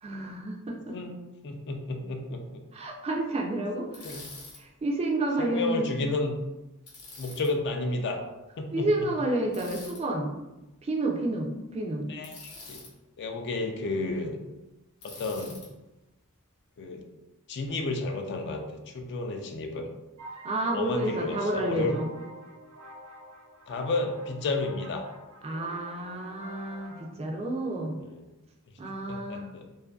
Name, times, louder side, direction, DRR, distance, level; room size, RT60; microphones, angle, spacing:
voice 1, 0.0-1.0 2.7-4.2 4.6-5.9 8.7-10.3 10.8-12.1 20.4-22.1 25.4-28.0 28.8-29.5, right 1 dB, 30° right, 1 dB, 0.3 m, -30 dB
voice 2, 0.9-2.6 4.0-4.2 5.4-6.3 7.2-8.2 8.6-8.9 12.1-12.8 13.2-14.4 15.0-15.6 16.8-17.0 17.5-19.9 20.7-22.0 23.7-25.0 28.0-28.2 29.1-29.6, left 2 dB, 50° left, 4 dB, 0.3 m, -32 dB
Bicycle, 3.9-4.6 6.9-7.5 9.5-10.0 12.2-12.9 15.0-15.7, left 3 dB, 75° left, 0.8 m, -45 dB
sound 1, 20.2-27.1, right 1 dB, 90° right, 0.9 m, -47 dB
2.5 x 2.4 x 2.3 m, 1.0 s
head